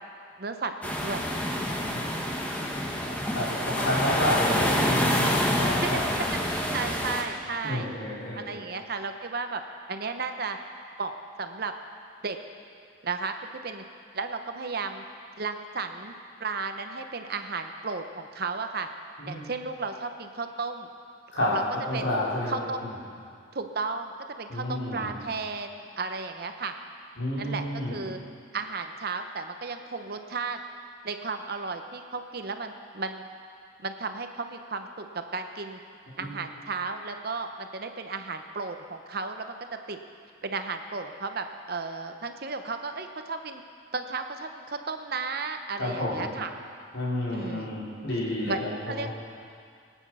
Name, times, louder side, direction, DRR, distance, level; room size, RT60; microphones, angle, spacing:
voice 1, 0.4-1.2 5.8-6.0 6.4-7.9 8.5-9.6 9.9-10.6 11.0-11.7 12.2-12.4 13.0-13.3 13.6-13.8 14.1-15.0 15.4-16.1 16.4-18.9 19.3-20.9 21.4-21.6 21.9-22.1 22.5-22.9 23.5-26.7 27.4-28.2 28.5-30.6 31.0-33.3 33.8-35.8 36.2-40.0 40.4-43.6 43.9-46.5 47.3-47.7 48.5-49.1, right 4 dB, 50° right, 6 dB, 0.8 m, -34 dB
sound 1, 0.8-7.2, equal, 10° left, 1.3 m, -27 dB
voice 2, 3.3-6.2 7.6-8.6 19.2-19.4 21.3-21.5 21.8-22.6 24.5-25.1 27.2-27.9 36.2-36.3 45.8-46.2 46.9-49.1, left 1 dB, 65° left, -7 dB, 4.4 m, -29 dB
20.0 x 9.1 x 6.2 m, 2.3 s
head